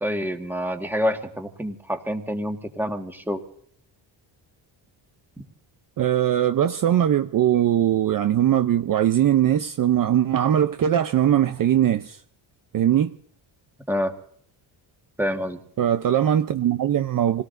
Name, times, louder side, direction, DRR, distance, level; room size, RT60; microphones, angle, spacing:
voice 1, 0.0-3.4 13.9-14.1 15.2-15.6, equal, 5° right, 1.7 m, -27 dB
voice 2, 6.0-12.2 12.7-13.1 15.8-17.4, right 10 dB, 45° right, 0.7 m, -20 dB
28.0 x 18.0 x 2.6 m
cardioid pair, 120°, 47 cm